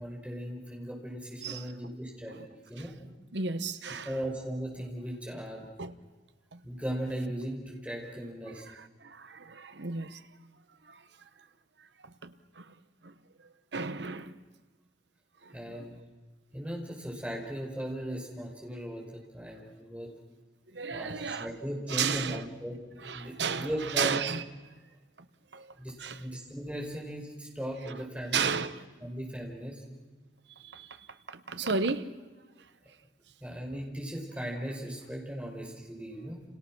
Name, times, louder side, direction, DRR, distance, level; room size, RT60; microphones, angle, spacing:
voice 1, 0.0-3.0 4.1-5.7 6.6-8.6 15.5-16.0 16.5-19.0 19.3-20.1 20.9-22.8 23.1-24.2 25.8-28.4 29.0-29.8 33.4-36.4, equal, 5° right, 5.2 m, -37 dB
voice 2, 1.4-1.8 2.3-2.4 2.8-2.9 3.3-4.1 5.8-6.0 6.5-6.6 8.5-10.2 10.8-11.0 11.8-12.7 13.0-13.1 13.7-14.4 15.4-16.0 20.7-21.5 21.9-22.4 23.0-24.4 24.7-24.8 25.5-26.2 27.8-28.0 28.3-28.8 30.6-32.1, right 5 dB, 80° right, 1.2 m, -34 dB
30.0 x 29.0 x 6.3 m
head